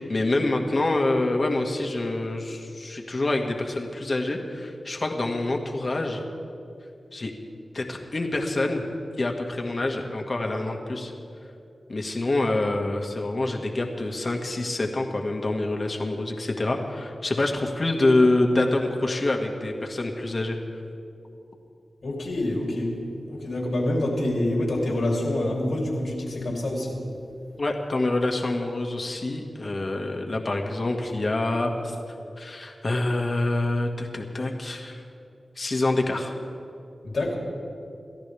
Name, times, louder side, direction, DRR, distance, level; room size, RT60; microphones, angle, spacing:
voice 1, 0.0-6.2 7.1-7.3 7.7-8.8 9.2-11.1 11.9-20.6 27.6-32.0 32.4-35.0 35.6-36.3, left 2 dB, 50° left, 2 dB, 1.8 m, -26 dB
voice 2, 22.0-23.0 23.3-27.0 37.0-37.3, left 1 dB, 80° left, -2 dB, 3.4 m, -26 dB
28.5 x 14.0 x 3.5 m, 2.7 s
wide cardioid pair, 80°, 0 cm